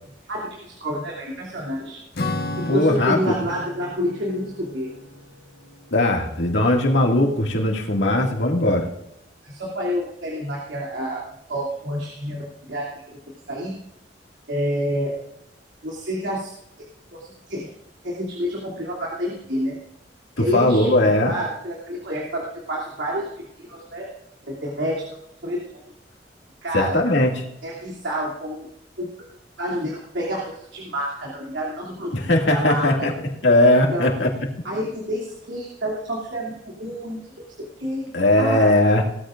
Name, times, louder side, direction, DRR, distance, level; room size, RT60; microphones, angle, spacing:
voice 1, 0.3-2.0 2.5-4.9 9.4-11.2 11.5-13.2 13.5-13.7 14.5-15.1 15.8-16.5 17.5-17.7 18.0-19.8 20.4-23.3 23.7-24.1 24.5-25.1 25.4-25.8 26.6-27.0 27.6-28.7 29.0-29.1 29.6-32.1 32.4-33.1 33.9-34.1 34.6-37.2 37.8-38.1 38.4-38.7, equal, 85° right, -4 dB, 2.8 m, -28 dB
Acoustic guitar / Strum, 2.1-6.9, left 2 dB, 60° left, 1.3 m, -34 dB
voice 2, 2.7-3.3 5.9-8.9 20.5-21.3 26.7-27.4 32.1-33.1 33.4-34.3 38.1-39.0, left 1 dB, 80° left, 0 dB, 2.2 m, -19 dB
19.0 x 14.0 x 2.5 m, 0.81 s
head